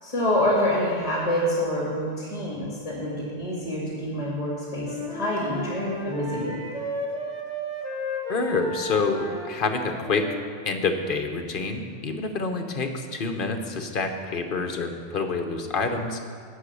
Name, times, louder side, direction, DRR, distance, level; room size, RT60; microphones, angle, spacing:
voice 1, 0.0-6.6, left 1 dB, 30° left, -5 dB, 2.5 m, -26 dB
Wind instrument woodwind instrument, 4.8-10.4, equal, 40° right, 1.6 m, -33 dB
voice 2, 8.3-10.3 10.6-16.2, left 4 dB, 55° left, 5 dB, 1.1 m, -27 dB
11.0 x 5.9 x 8.3 m, 2.2 s
omnidirectional pair, 1.1 m